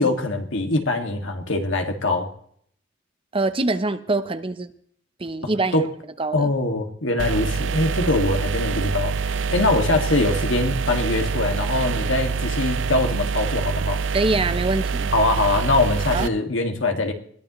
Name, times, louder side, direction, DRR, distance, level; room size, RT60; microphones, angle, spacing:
voice 1, 0.0-2.3 5.7-5.9 6.3-14.0 15.1-17.1, left 2 dB, 80° left, 4 dB, 2.1 m, -23 dB
voice 2, 3.3-4.7 5.2-5.8 6.2-6.5 14.1-15.1 16.1-16.3, right 2 dB, 30° right, 12 dB, 0.7 m, -24 dB
sound 1, 7.2-16.3, right 5 dB, 75° right, 0.6 m, -25 dB
21.5 x 14.5 x 3.1 m, 0.64 s
head